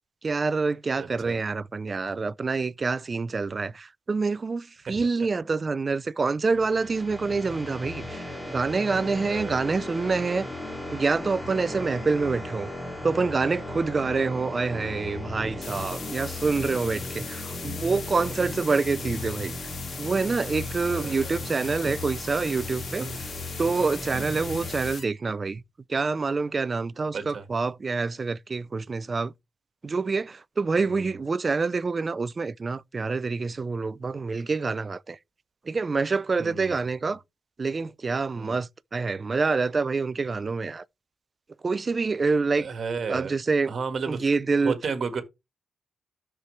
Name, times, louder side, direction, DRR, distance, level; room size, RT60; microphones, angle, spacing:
voice 1, 0.2-10.5 10.9-12.7 13.0-19.6 20.0-23.1 23.6-25.6 25.9-29.3 29.8-35.2 35.7-37.2 37.6-40.8 41.6-42.7 43.1-43.7 44.1-44.8, right 4 dB, 35° right, 0.4 m, -27 dB
voice 2, 1.0-1.4 4.9-5.1 9.2-9.6 11.7-11.9 20.9-21.4 23.0-23.1 23.6-23.7 24.1-24.6 27.1-27.5 30.8-31.1 36.4-36.8 37.1-37.2 38.4-38.6 42.6-43.3 43.7-45.2, right 5 dB, 55° right, 1.6 m, -34 dB
sound 1, 6.4-24.9, left 1 dB, 10° left, 2.5 m, -37 dB
sound 2, 15.6-25.0, left 5 dB, 55° left, 1.7 m, -39 dB
12.5 x 4.5 x 3.2 m
cardioid pair, 105°, 0 cm